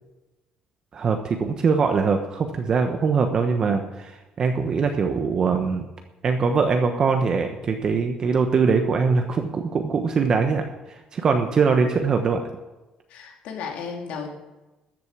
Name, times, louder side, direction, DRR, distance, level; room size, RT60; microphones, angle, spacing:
voice 1, 0.9-5.9 6.2-12.4, right 5 dB, 35° right, 5 dB, 1.1 m, -22 dB
voice 2, 13.1-14.3, left 6 dB, 80° left, 1 dB, 2.9 m, -34 dB
13.5 x 8.0 x 7.5 m, 1.1 s
cardioid pair, 145°, 2 cm